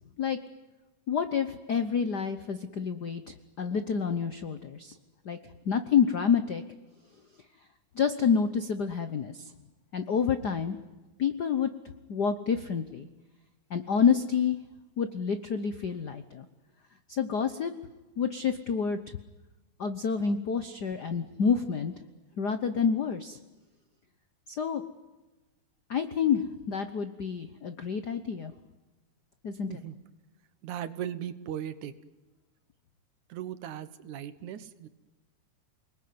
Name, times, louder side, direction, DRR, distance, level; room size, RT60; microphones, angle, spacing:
voice 1, 1.1-5.0 5.2-5.4 5.6-6.6 7.9-9.5 9.9-10.8 11.2-11.7 12.1-13.1 13.7-14.6 15.0-16.4 17.1-17.7 18.2-19.0 19.8-21.9 22.4-23.4 24.6-24.8 25.9-28.5 29.4-29.8, left 6 dB, 75° left, 10 dB, 0.9 m, -28 dB
voice 2, 30.6-31.9 33.3-34.9, right 10 dB, 80° right, 13 dB, 2.7 m, -37 dB
29.0 x 20.5 x 9.6 m, 1.2 s
omnidirectional pair, 3.4 m